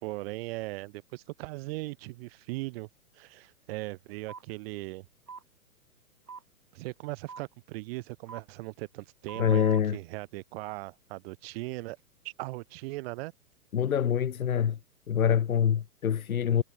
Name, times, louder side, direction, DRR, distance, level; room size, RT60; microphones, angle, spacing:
voice 1, 0.0-2.9 3.1-5.1 6.7-12.0 12.2-13.3, right 21 dB, 40° right, 4.4 m, -39 dB
sound 1, 4.3-4.4 5.3-5.4 6.3-6.4 7.3-7.4 8.3-8.4 9.3-9.8, right 5 dB, 85° right, 2.4 m, -43 dB
voice 2, 9.4-10.0 13.7-14.8 15.1-16.6, left 8 dB, 65° left, 4.3 m, -25 dB
figure-of-eight pair, 120°, 45 cm